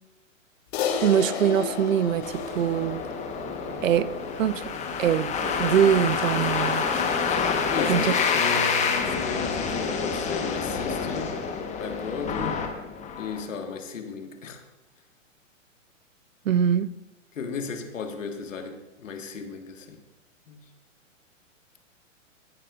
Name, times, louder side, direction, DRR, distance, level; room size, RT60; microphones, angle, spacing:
Crash cymbal, 0.7-5.3, left 7 dB, 50° left, 1.4 m, -33 dB
voice 1, 1.0-3.0 3.8-4.1 4.4-4.6 5.0-5.3 5.6-6.8 7.9-8.0 16.5-16.9, right 9 dB, 75° right, 0.6 m, -23 dB
sound 1, 2.0-8.2, right 4 dB, 35° right, 2.0 m, -46 dB
sound 2, 2.2-13.4, left 5 dB, 15° left, 1.1 m, -28 dB
voice 2, 7.7-11.4 11.8-12.7 13.2-14.6 17.3-20.0 20.5-20.7, left 5 dB, 70° left, 1.6 m, -35 dB
17.0 x 8.8 x 2.4 m
hypercardioid pair, 115°, 39 cm